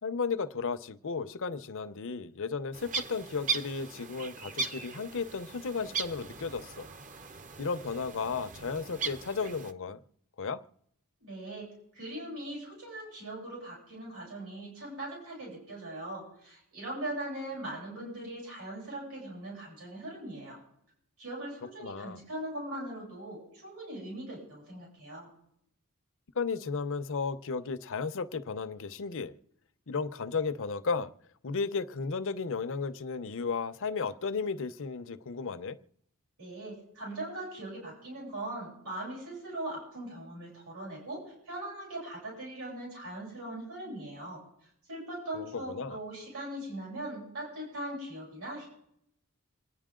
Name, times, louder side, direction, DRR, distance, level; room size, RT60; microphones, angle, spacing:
voice 1, 0.0-6.9 7.6-10.0 10.4-10.6 21.8-22.2 26.4-29.3 29.9-31.1 31.4-35.8 45.3-46.0, left 5 dB, 65° left, 0.8 m, -34 dB
sound 1, 2.7-9.7, right 5 dB, 35° right, 0.8 m, -38 dB
voice 2, 11.2-20.6 21.2-25.3 36.4-44.4 44.9-48.7, right 1 dB, 80° right, 7.9 m, -40 dB
27.5 x 9.8 x 3.8 m
head